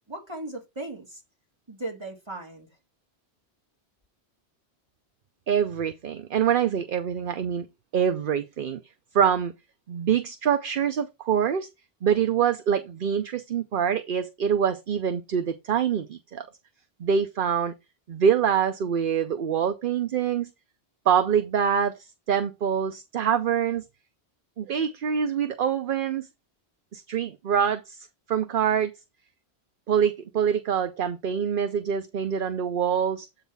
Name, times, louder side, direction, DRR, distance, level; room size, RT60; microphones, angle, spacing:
voice 1, 0.1-1.2 1.7-2.7, right 2 dB, 25° right, 2.5 m, -37 dB
voice 2, 5.5-7.7 7.9-8.8 9.1-9.5 9.9-11.7 12.0-16.5 17.0-17.7 18.1-20.5 21.1-23.8 24.6-26.3 26.9-28.9 29.9-33.3, right 8 dB, 55° right, 0.8 m, -25 dB
8.2 x 4.0 x 5.2 m
omnidirectional pair, 1.1 m